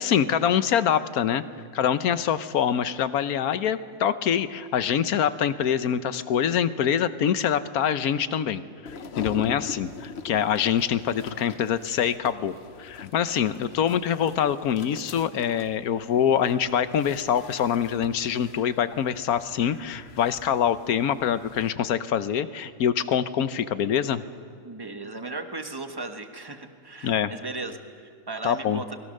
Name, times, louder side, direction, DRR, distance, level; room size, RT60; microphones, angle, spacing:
voice 1, 0.0-1.4 1.7-24.2 27.0-27.3 28.4-28.8, left 9 dB, 85° left, 13 dB, 1.3 m, -25 dB
sound 1, 8.9-21.7, left 5 dB, 50° left, 1.2 m, -43 dB
voice 2, 24.6-29.0, right 3 dB, 15° right, 6 dB, 1.3 m, -36 dB
29.5 x 21.0 x 6.6 m, 2.2 s
omnidirectional pair, 1.5 m